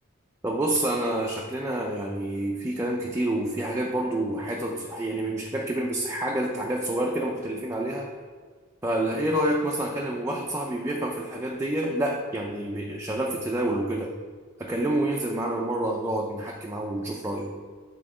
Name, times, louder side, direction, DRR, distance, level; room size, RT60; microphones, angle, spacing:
voice 1, 0.4-8.1 8.8-14.1 14.6-17.6, right 1 dB, 15° right, -1 dB, 0.4 m, -28 dB
6.0 x 3.7 x 4.9 m, 1.6 s
head